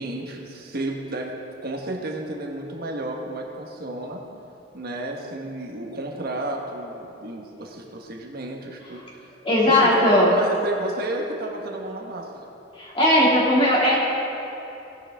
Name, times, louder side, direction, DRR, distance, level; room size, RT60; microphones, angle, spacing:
voice 1, 0.0-4.2 4.7-9.0 9.7-12.5, right 1 dB, 55° right, 1 dB, 1.4 m, -32 dB
voice 2, 9.4-10.3 12.8-13.9, left 1 dB, 30° left, -7 dB, 2.4 m, -18 dB
18.5 x 9.8 x 3.6 m, 3.0 s
head